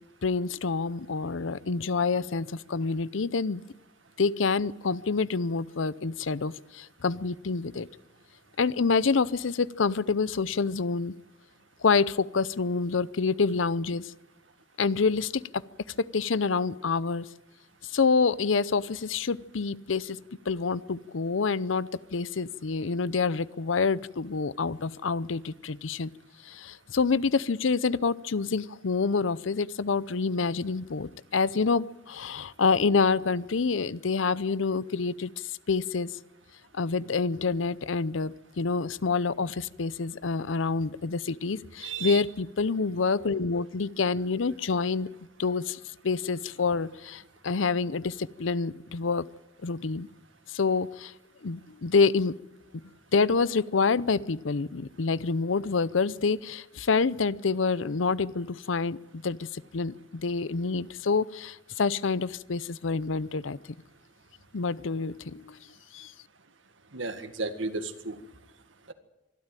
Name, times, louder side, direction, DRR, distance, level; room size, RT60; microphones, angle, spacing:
voice 1, 0.2-3.6 4.2-7.9 8.6-11.1 11.8-14.1 14.8-15.6 16.0-17.3 17.8-20.2 20.5-26.1 26.4-36.1 36.7-45.1 45.4-49.3 49.6-50.1 50.5-51.1 51.4-52.3 53.1-63.6 64.5-65.6 65.9-66.1, left 4 dB, 85° left, 19 dB, 0.7 m, -27 dB
voice 2, 41.8-42.2 66.9-68.2 68.9-69.0, right 4 dB, 80° right, 9 dB, 1.9 m, -33 dB
24.5 x 13.0 x 9.1 m, 0.94 s
head